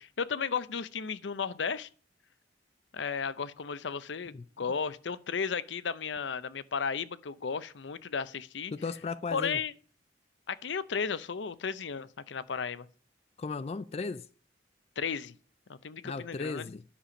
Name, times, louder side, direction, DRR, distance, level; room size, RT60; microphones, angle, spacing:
voice 1, 0.0-1.9 2.9-8.7 9.3-9.7 10.5-12.9 15.0-15.3 15.7-16.7, left 6 dB, 80° left, 0.6 m, -34 dB
voice 2, 8.7-9.6 13.4-14.3 16.0-16.8, left 4 dB, 35° left, 0.3 m, -36 dB
10.0 x 6.8 x 5.1 m
head